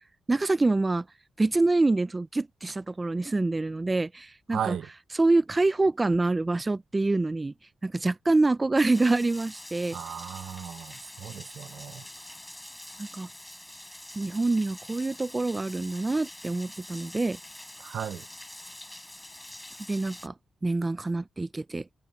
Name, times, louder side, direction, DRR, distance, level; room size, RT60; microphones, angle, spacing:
voice 1, 0.3-1.0 1.4-4.8 5.1-7.5 7.8-10.0 13.0-13.3 14.2-17.4 19.9-20.3 20.6-21.8, right 2 dB, 15° right, 0.4 m, -26 dB
voice 2, 4.5-4.9 9.9-12.0 17.8-18.2, right 9 dB, 70° right, 0.6 m, -35 dB
Rain, 8.8-20.3, left 1 dB, 5° left, 4.2 m, -45 dB
wide cardioid pair, 155°, 0 cm